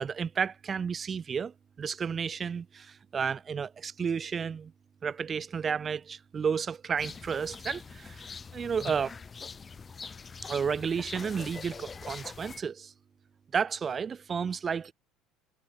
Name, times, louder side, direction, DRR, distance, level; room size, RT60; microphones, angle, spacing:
voice 1, 0.0-4.7 5.0-8.3 8.5-9.2 10.4-12.9 13.5-14.9, right 6 dB, 25° right, 0.3 m, -32 dB
sound 1, 7.0-12.6, left 5 dB, 20° left, 0.9 m, -43 dB
cardioid pair, 135°, 0 cm